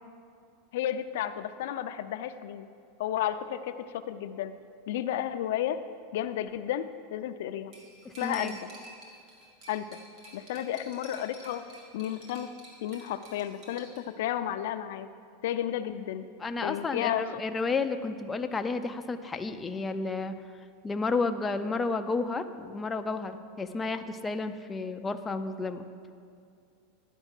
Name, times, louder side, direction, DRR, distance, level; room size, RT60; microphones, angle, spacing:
voice 1, 0.7-2.7 3.0-3.7 4.1-4.5 4.9-5.8 6.1-7.7 8.2-8.5 9.7-9.8 10.3-11.6 11.9-12.5 12.8-15.1 15.4-16.2 16.6-17.4, left 11 dB, 70° left, 10 dB, 0.5 m, -32 dB
Cutlery silverware, 7.7-14.0, right 1 dB, 45° right, 2.4 m, -50 dB
voice 2, 8.1-8.6 16.4-20.4 20.8-26.1, left 3 dB, 15° left, 7 dB, 0.4 m, -32 dB
11.0 x 5.2 x 6.6 m, 2.4 s
supercardioid pair, 155°, 0 cm